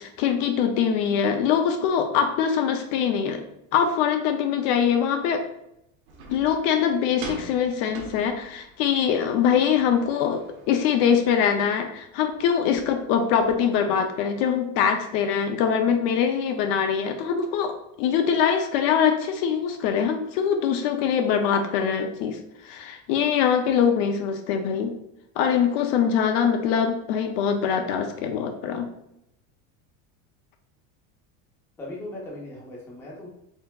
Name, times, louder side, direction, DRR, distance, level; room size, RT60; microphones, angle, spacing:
voice 1, 0.0-3.4 3.7-5.4 6.3-10.4 10.7-24.9 25.4-28.9, left 7 dB, 50° left, 6 dB, 0.5 m, -23 dB
sound 1, 6.1-13.6, right 3 dB, 70° right, 1.0 m, -44 dB
voice 2, 31.8-33.3, left 1 dB, 5° left, -4 dB, 0.5 m, -38 dB
4.4 x 3.7 x 2.3 m, 0.79 s
cardioid pair, 175°, 41 cm